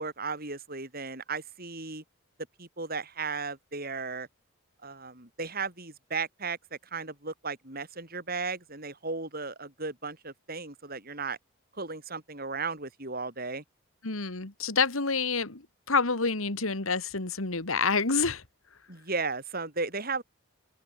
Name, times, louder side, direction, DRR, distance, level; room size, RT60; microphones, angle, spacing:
voice 1, 0.0-2.0 2.6-4.3 4.8-11.4 11.7-13.6 18.9-20.2, right 4 dB, 45° right, 7.5 m, -35 dB
voice 2, 14.0-15.6 15.9-18.4, left 4 dB, 80° left, 2.4 m, -27 dB
head